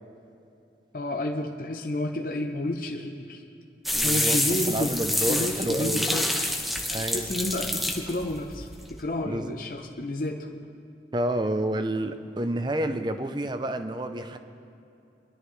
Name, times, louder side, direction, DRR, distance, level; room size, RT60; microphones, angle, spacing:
voice 1, 0.9-3.4 4.0-6.3 6.9-10.5, left 1 dB, 50° left, 2 dB, 0.7 m, -31 dB
sound 1, 3.8-9.0, left 1 dB, ahead, 0.9 m, -28 dB
voice 2, 3.9-6.1 6.9-7.3 9.2-9.5 11.1-14.4, right 1 dB, 25° right, 9 dB, 0.6 m, -29 dB
23.5 x 11.5 x 3.2 m, 2.7 s
head